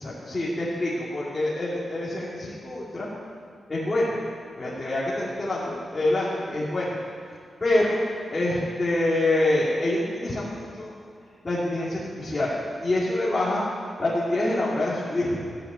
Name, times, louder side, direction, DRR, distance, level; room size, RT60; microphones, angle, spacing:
voice 1, 0.0-3.1 3.7-4.2 4.5-7.0 7.6-8.0 8.3-10.9 11.4-12.5 12.8-13.6 14.0-15.5, left 1 dB, 20° left, -8 dB, 2.4 m, -26 dB
14.5 x 9.8 x 8.2 m, 2.1 s
wide cardioid pair, 180°, 0 cm